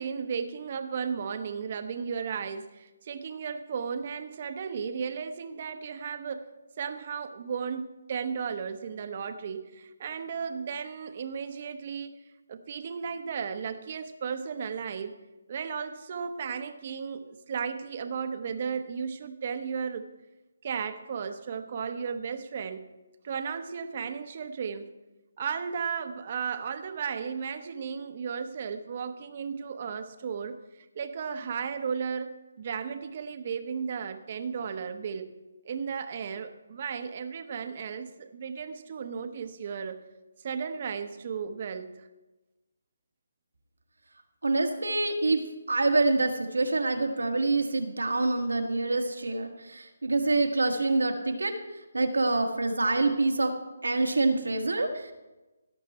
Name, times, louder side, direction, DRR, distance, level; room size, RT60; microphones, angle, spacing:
voice 1, 0.0-6.5 6.8-12.1 12.5-15.2 15.5-20.1 20.6-22.9 23.2-24.9 25.4-35.3 35.6-40.0 40.4-42.1, right 6 dB, 45° right, 9 dB, 1.0 m, -35 dB
voice 2, 44.4-45.4 45.7-51.6 51.9-53.6 53.8-55.1, right 2 dB, 90° right, 4 dB, 1.6 m, -26 dB
17.0 x 6.8 x 4.3 m, 1.1 s
figure-of-eight pair, 155°, 0 cm